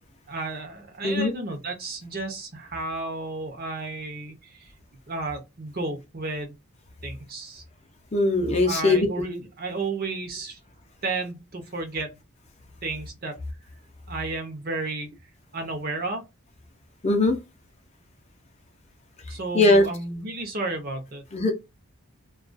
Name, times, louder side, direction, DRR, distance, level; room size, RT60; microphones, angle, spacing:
voice 1, 0.3-4.7 5.1-6.6 7.0-7.6 8.6-10.6 11.0-12.2 12.8-13.4 14.1-15.2 15.5-16.2 19.3-21.2, right 3 dB, 45° right, 0.7 m, -32 dB
voice 2, 8.1-9.1 17.0-17.4 19.5-19.9 21.3-21.5, left 2 dB, 30° left, 0.5 m, -20 dB
2.3 x 2.3 x 2.5 m
head